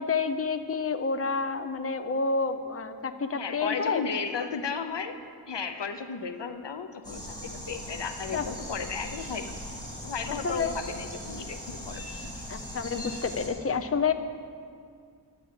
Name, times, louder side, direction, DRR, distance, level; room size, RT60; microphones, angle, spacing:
voice 1, 0.0-4.0 8.3-8.4 10.4-10.7 12.5-14.1, left 5 dB, 35° left, 7 dB, 0.6 m, -29 dB
voice 2, 3.4-5.2 5.5-9.6 10.0-12.4, left 5 dB, 85° left, 8 dB, 0.7 m, -34 dB
sound 1, 7.0-13.5, equal, 10° left, 2.8 m, -39 dB
10.5 x 8.5 x 7.5 m, 2.2 s
wide cardioid pair, 50°, 41 cm